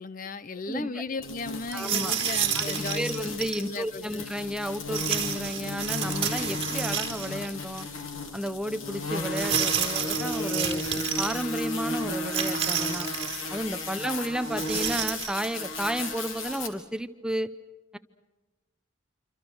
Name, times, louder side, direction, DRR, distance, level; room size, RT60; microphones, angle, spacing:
voice 1, 0.0-3.1 3.6-4.2 13.9-14.0, left 3 dB, 45° left, 0.8 m, -36 dB
voice 2, 0.7-1.0 1.7-2.2 2.5-7.9 8.3-10.8 11.2-13.1 13.5-17.5, equal, 5° right, 0.7 m, -32 dB
sound 1, 1.2-16.7, left 2 dB, 90° left, 3.1 m, -34 dB
sound 2, 1.7-3.6 4.9-7.5 7.8-7.9 9.3-11.4 12.3-13.5 14.4-15.4, right 8 dB, 30° right, 3.8 m, -30 dB
27.5 x 26.0 x 6.2 m
head